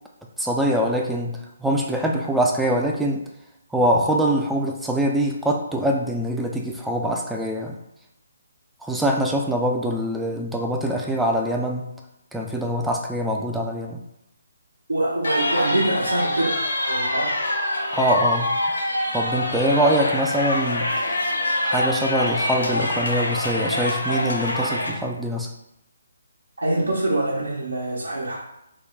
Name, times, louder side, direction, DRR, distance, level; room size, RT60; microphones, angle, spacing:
voice 1, 0.4-3.3 3.7-7.8 8.8-12.0 12.3-14.0 17.9-18.6 19.1-20.9 21.6-25.5, right 1 dB, 5° right, 0 dB, 0.4 m, -23 dB
voice 2, 14.9-16.6 16.8-17.4 19.7-19.8 26.6-28.3, right 1 dB, 85° right, -7 dB, 0.9 m, -24 dB
sound 1, 15.2-24.9, left 1 dB, 75° left, 1.2 m, -25 dB
3.6 x 2.1 x 3.8 m, 0.83 s
figure-of-eight pair, 150°, 0 cm